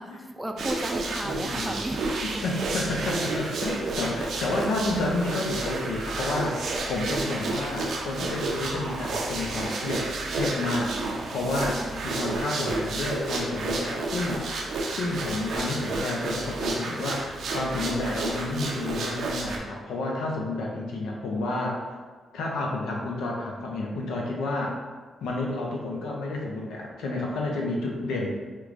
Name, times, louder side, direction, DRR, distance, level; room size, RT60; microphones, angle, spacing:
voice 1, 0.0-2.4 11.3-12.4, right 1 dB, 10° right, 4 dB, 0.4 m, -36 dB
sound 1, 0.6-19.6, right 3 dB, 75° right, 0.5 m, -31 dB
voice 2, 1.2-1.8 2.2-10.0 10.3-10.9 11.3-14.5 14.9-21.8 22.3-24.8 25.2-28.3, left 2 dB, 85° left, -1 dB, 0.6 m, -30 dB
4.5 x 2.2 x 2.5 m, 1.4 s
cardioid pair, 65°, 0 cm